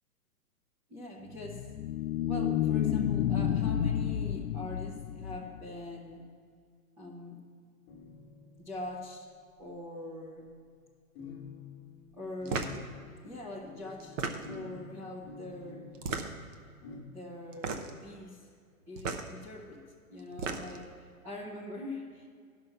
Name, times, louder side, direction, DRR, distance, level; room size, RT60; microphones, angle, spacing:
voice 1, 0.9-1.7 2.3-6.3 7.0-7.4 8.6-9.3 9.6-10.5 12.1-12.8 13.2-14.2 14.5-15.9 17.0-18.5 18.9-19.8 20.1-22.3, left 1 dB, 5° right, -6 dB, 0.5 m, -43 dB
sound 1, 1.3-5.8, left 10 dB, 70° left, 0.5 m, -30 dB
sound 2, 7.9-9.2 9.5-9.6 11.2-17.0, left 4 dB, 25° left, 1.2 m, -49 dB
sound 3, 12.5-12.8 14.0-14.7 15.9-16.5 17.5-18.0 19.0-19.3 20.2-20.9, right 4 dB, 55° right, 1.0 m, -35 dB
11.0 x 5.8 x 5.6 m, 2.1 s
hypercardioid pair, 140°, 44 cm